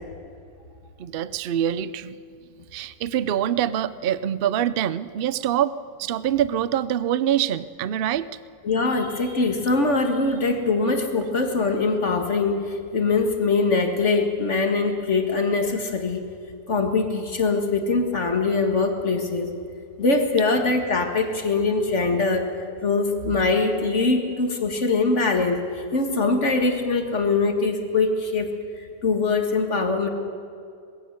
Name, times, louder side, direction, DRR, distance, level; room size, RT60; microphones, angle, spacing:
voice 1, 1.0-2.2 2.7-8.3, right 10 dB, 90° right, 16 dB, 0.5 m, -25 dB
voice 2, 8.6-16.2 16.7-19.5 20.0-22.5 22.8-28.5 28.8-30.1, left 3 dB, 45° left, 4 dB, 2.0 m, -22 dB
21.5 x 15.5 x 8.1 m, 2.4 s
omnidirectional pair, 1.7 m